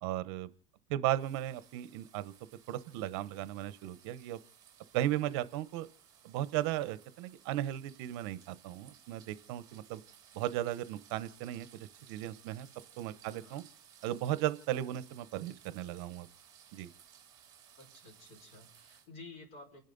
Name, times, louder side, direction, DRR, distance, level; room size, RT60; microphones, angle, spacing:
voice 1, 0.0-0.5 0.9-2.3 2.7-4.4 4.9-5.9 6.2-10.0 10.3-12.7 13.0-13.6 14.0-16.3 16.7-16.9, right 13 dB, 60° right, 14 dB, 0.9 m, -36 dB
sound 1, 1.1-19.1, right 9 dB, 25° right, 3.1 m, -60 dB
voice 2, 13.2-13.6 17.8-19.8, left 3 dB, 45° left, 3 dB, 5.3 m, -52 dB
29.0 x 10.5 x 4.0 m, 0.42 s
cardioid pair, 170°, 16 cm